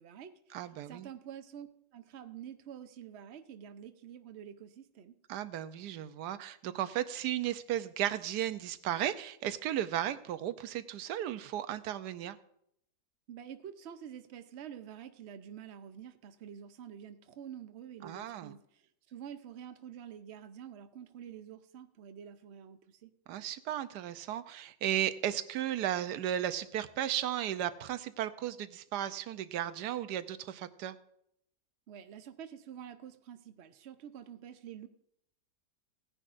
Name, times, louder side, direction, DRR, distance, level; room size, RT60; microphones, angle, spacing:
voice 1, 0.0-0.6 0.9-5.2 13.3-23.1 31.9-34.9, right 9 dB, 55° right, 9 dB, 0.8 m, -48 dB
voice 2, 0.5-1.1 5.3-12.4 18.0-18.5 23.3-31.0, right 11 dB, 90° right, 12 dB, 1.2 m, -35 dB
17.0 x 10.0 x 2.5 m, 0.73 s
omnidirectional pair, 1.7 m